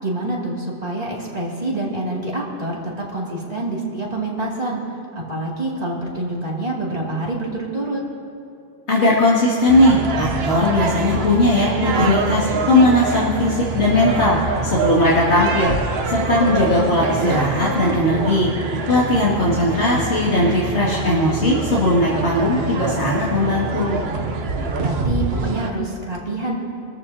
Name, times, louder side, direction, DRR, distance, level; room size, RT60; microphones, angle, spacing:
voice 1, 0.0-4.8 5.3-8.0 24.8-26.5, right 2 dB, 35° right, -5 dB, 2.7 m, -26 dB
voice 2, 8.9-14.4 14.6-18.5 18.9-24.0, left 1 dB, 80° left, -8 dB, 2.7 m, -18 dB
sound 1, 9.7-25.7, right 3 dB, 65° right, 1.1 m, -25 dB
26.5 x 14.0 x 2.8 m, 2.5 s
omnidirectional pair, 1.1 m